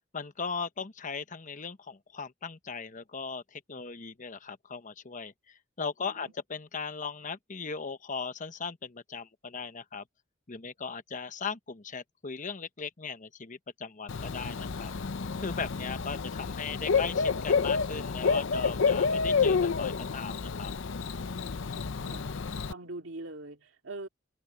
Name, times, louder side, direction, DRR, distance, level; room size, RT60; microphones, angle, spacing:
voice 1, 0.1-10.0 10.5-14.9 15.4-20.7, left 5 dB, 40° left, 1.0 m, -38 dB
voice 2, 6.0-6.3 22.0-22.2 22.7-24.1, right 2 dB, 70° right, 2.6 m, -43 dB
Bird / Cricket, 14.1-22.7, left 5 dB, 65° left, 0.6 m, -29 dB
head